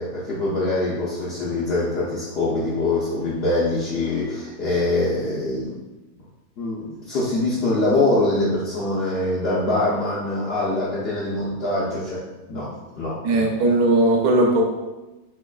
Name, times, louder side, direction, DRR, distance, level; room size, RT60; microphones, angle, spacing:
voice 1, 0.0-5.8 6.6-12.2 12.5-12.7 12.9-13.5, left 2 dB, 55° left, -9 dB, 0.7 m, -24 dB
voice 2, 13.2-14.6, right 2 dB, 75° right, 1 dB, 1.1 m, -18 dB
3.6 x 3.1 x 2.3 m, 1.1 s
omnidirectional pair, 1.7 m